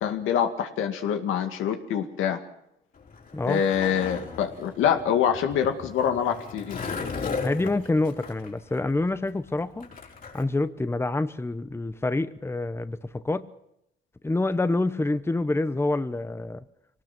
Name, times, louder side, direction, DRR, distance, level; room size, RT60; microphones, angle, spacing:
voice 1, 0.0-2.4 3.5-6.8, left 8 dB, 90° left, 6 dB, 2.2 m, -25 dB
Skateboard, 3.0-10.4, left 4 dB, 45° left, 4.9 m, -36 dB
voice 2, 7.4-9.9 10.3-13.5 14.2-16.6, left 2 dB, 10° left, 12 dB, 1.0 m, -27 dB
24.0 x 19.0 x 6.1 m, 0.81 s
cardioid pair, 90°, 20 cm